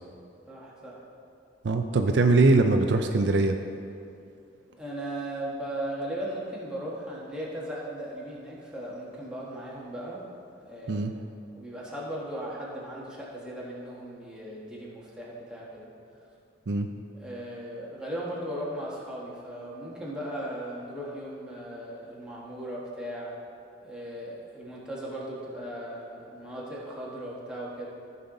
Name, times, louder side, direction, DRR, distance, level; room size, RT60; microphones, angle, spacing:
voice 1, 0.5-1.0 4.8-10.2 10.7-11.2 11.5-15.9 17.1-23.3 23.8-27.9, right 1 dB, 5° right, -6 dB, 1.6 m, -37 dB
voice 2, 1.6-3.6 10.9-11.1 16.7-16.9, right 3 dB, 70° right, 5 dB, 0.5 m, -22 dB
14.0 x 5.6 x 3.9 m, 2.5 s
head